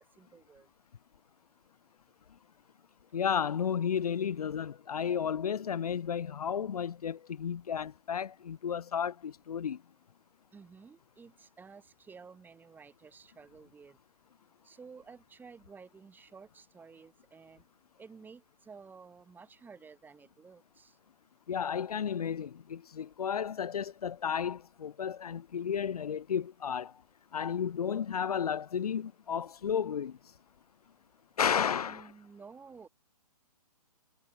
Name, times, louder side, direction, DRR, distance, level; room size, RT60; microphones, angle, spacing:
voice 1, 0.2-0.7 10.5-14.0 14.6-17.6 18.0-21.0 31.8-32.9, right 5 dB, 10° right, 6.2 m, -53 dB
voice 2, 3.1-9.8 21.5-26.9 27.3-30.2 31.4-32.1, left 8 dB, 70° left, 0.9 m, -33 dB
hypercardioid pair, 135°, 20 cm